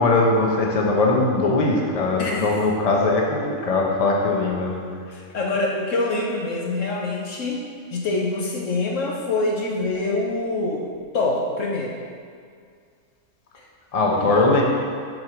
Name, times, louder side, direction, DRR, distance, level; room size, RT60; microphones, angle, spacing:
voice 1, 0.0-4.8 13.9-14.6, left 2 dB, 30° left, -1 dB, 0.9 m, -20 dB
voice 2, 2.2-2.5 5.1-7.6 7.9-10.8 11.1-11.9 13.6-13.7 14.2-14.4, left 2 dB, 65° left, -1 dB, 1.1 m, -25 dB
7.6 x 4.7 x 5.9 m, 2.2 s
omnidirectional pair, 1.6 m